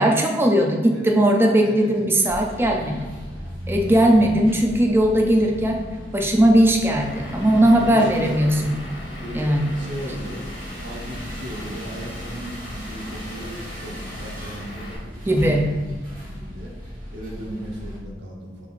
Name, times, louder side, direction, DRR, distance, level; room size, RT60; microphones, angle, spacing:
voice 1, 0.0-3.1 3.7-5.8 6.1-8.7 9.3-9.7 15.3-15.7, right 1 dB, 15° right, 1 dB, 0.4 m, -18 dB
voice 2, 1.6-2.1 3.9-4.5 7.5-8.7 9.2-10.5 10.8-16.0 16.2-16.7 17.1-18.7, equal, 80° right, -2 dB, 1.0 m, -36 dB
sound 1, 2.3-18.0, equal, 45° right, 1.3 m, -37 dB
Vehicle / Engine, 7.0-15.0, left 1 dB, 80° left, 1.2 m, -38 dB
4.8 x 3.4 x 2.5 m, 1.3 s
head